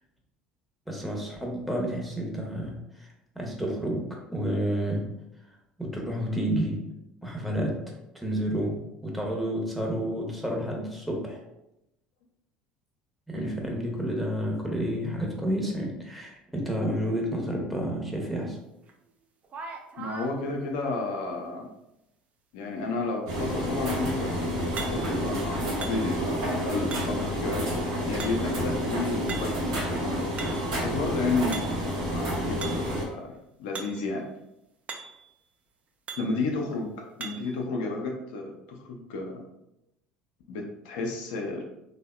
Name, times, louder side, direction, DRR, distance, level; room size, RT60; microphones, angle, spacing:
voice 1, 0.9-4.0 4.3-5.0 5.8-6.8 7.2-7.7 8.1-11.4 13.3-18.6, equal, ahead, -1 dB, 0.8 m, -30 dB
sound 1, 18.9-19.0 19.4-20.3 24.8-25.3 25.8-26.3 26.9-27.3 28.2-28.7 29.3-29.7 30.1-30.8 31.5-31.9 32.6-32.9 33.7-34.0 34.3-34.4 34.9-35.3 36.1-36.4 37.2-37.6, right 5 dB, 35° right, 0.4 m, -40 dB
voice 2, 20.0-21.7 22.5-27.7 28.1-30.2 30.8-33.3 33.6-34.2 36.1-39.4 40.5-41.6, left 3 dB, 65° left, 1 dB, 0.4 m, -32 dB
sound 2, 23.3-33.0, equal, 65° right, 0.9 m, -29 dB
3.3 x 2.0 x 2.2 m, 0.87 s
figure-of-eight pair, 65°, 4 cm